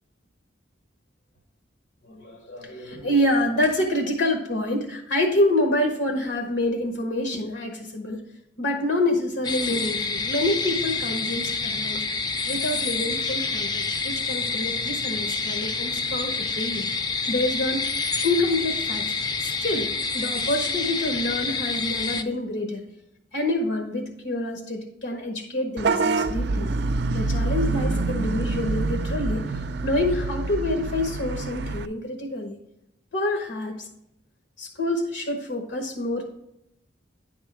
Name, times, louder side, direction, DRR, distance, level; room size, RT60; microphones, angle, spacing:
voice 1, 2.0-8.2 8.6-12.0 12.5-16.9 17.3-17.8 18.2-19.0 19.4-22.8 23.3-26.7 27.1-29.5 29.8-32.6 33.1-33.9 34.6-36.3, left 1 dB, 85° left, 3 dB, 1.3 m, -27 dB
sound 1, 9.4-22.2, left 4 dB, 25° left, 0.4 m, -28 dB
Vehicle horn car horn honking / Bus, 25.8-31.9, right 3 dB, 65° right, 0.4 m, -26 dB
9.9 x 3.7 x 4.7 m, 0.83 s
head